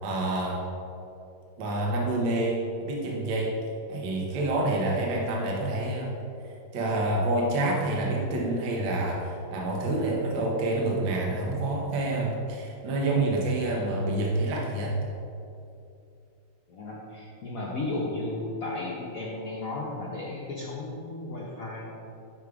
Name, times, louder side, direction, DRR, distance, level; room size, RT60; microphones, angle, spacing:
voice 1, 0.0-0.6 1.6-3.5 3.9-6.2 6.4-14.9, right 2 dB, 70° right, -2 dB, 1.5 m, -28 dB
voice 2, 16.7-21.9, left 2 dB, 70° left, -4 dB, 0.8 m, -34 dB
10.5 x 4.8 x 2.4 m, 2.6 s
omnidirectional pair, 2.3 m